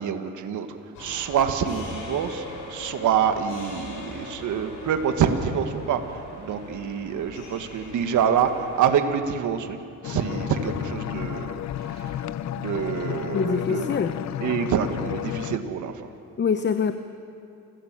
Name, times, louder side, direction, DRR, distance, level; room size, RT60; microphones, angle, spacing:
voice 1, 0.0-9.8 10.0-14.0 14.4-16.1, right 7 dB, 75° right, 7 dB, 1.7 m, -26 dB
sound 1, 0.9-8.9, left 2 dB, 80° left, 6.5 m, -41 dB
sound 2, 10.0-15.6, left 11 dB, 65° left, 0.7 m, -32 dB
voice 2, 13.3-14.1 16.4-16.9, left 6 dB, 35° left, 9 dB, 1.0 m, -24 dB
28.5 x 15.0 x 7.6 m, 2.6 s
cardioid pair, 90°, 30 cm